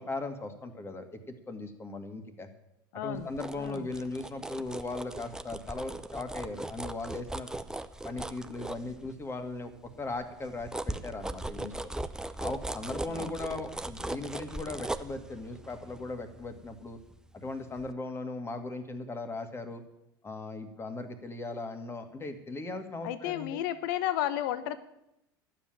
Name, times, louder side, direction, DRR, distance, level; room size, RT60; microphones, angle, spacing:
voice 1, 0.0-2.5 2.9-7.5 8.0-9.7 10.0-11.7 12.3-17.0 17.3-19.8 20.2-23.6, left 2 dB, 20° left, 7 dB, 2.0 m, -38 dB
voice 2, 2.9-3.3 3.6-3.9 13.1-13.4 23.0-24.8, left 12 dB, 60° left, 13 dB, 1.0 m, -33 dB
sound 1, 3.2-9.4 9.9-17.4 17.8-17.9, right 2 dB, 5° right, 0.7 m, -39 dB
12.0 x 7.6 x 9.0 m, 0.84 s
figure-of-eight pair, 80°, 12 cm